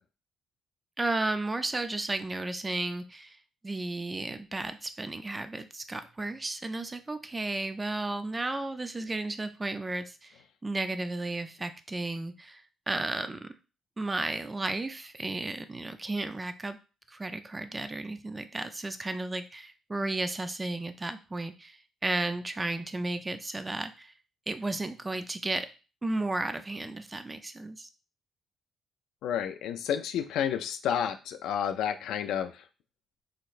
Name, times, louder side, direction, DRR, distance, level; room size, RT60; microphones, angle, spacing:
voice 1, 1.0-3.4 3.6-10.4 10.6-13.5 14.0-16.8 17.1-24.1 24.5-25.7 26.0-27.9, right 2 dB, 20° right, 9 dB, 0.5 m, -33 dB
voice 2, 29.2-32.6, left 9 dB, 85° left, 8 dB, 0.4 m, -30 dB
3.9 x 3.2 x 2.5 m, 0.32 s
cardioid pair, 90°, 0 cm